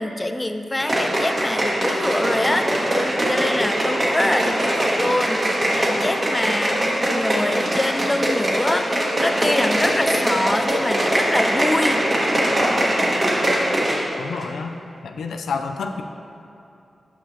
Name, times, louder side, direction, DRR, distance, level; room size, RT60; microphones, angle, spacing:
voice 1, 0.0-12.0, left 1 dB, 25° left, 7 dB, 0.5 m, -25 dB
sound 1, 0.8-14.1 14.4-14.5, right 1 dB, 40° right, 1.6 m, -22 dB
voice 2, 14.2-14.7 15.0-16.0, left 5 dB, 90° left, 5 dB, 0.3 m, -29 dB
9.9 x 5.5 x 2.8 m, 2.7 s
cardioid pair, 45°, 0 cm